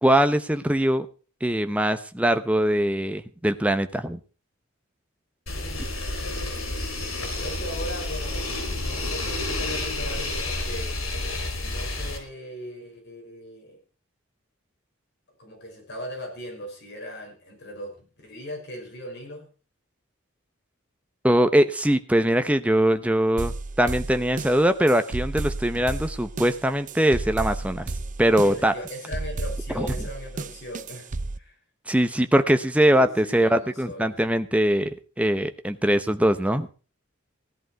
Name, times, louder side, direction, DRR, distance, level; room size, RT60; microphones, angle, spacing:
voice 1, 0.0-1.1 1.4-4.2 21.2-27.9 28.2-28.7 29.7-29.9 31.9-36.7, right 1 dB, 5° right, 9 dB, 0.9 m, -22 dB
sound 1, 5.5-12.2, left 2 dB, 90° left, 4.8 m, -30 dB
voice 2, 5.5-6.1 7.3-11.0 11.6-13.8 15.4-19.5 28.4-31.1 31.4-31.5 32.9-34.2, equal, 55° left, 0 dB, 5.9 m, -38 dB
sound 2, 23.4-31.4, right 2 dB, 40° right, 0.6 m, -33 dB
16.5 x 11.0 x 4.7 m, 0.37 s
head